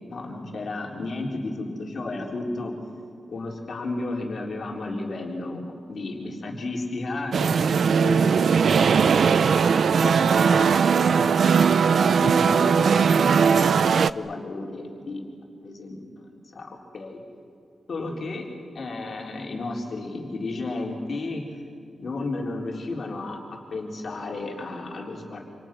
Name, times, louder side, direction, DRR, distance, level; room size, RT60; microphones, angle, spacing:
voice 1, 0.1-2.7 3.3-9.1 9.8-11.7 12.2-15.2 15.6-17.2 17.9-18.4 18.7-21.4 22.0-23.4 23.7-25.4, left 2 dB, 50° left, -1 dB, 3.9 m, -33 dB
sound 1, 7.3-14.1, right 6 dB, 65° right, 0.6 m, -19 dB
sound 2, 8.3-13.9, right 1 dB, 20° right, 1.6 m, -46 dB
29.5 x 27.5 x 6.2 m, 2.4 s
wide cardioid pair, 170°, 0 cm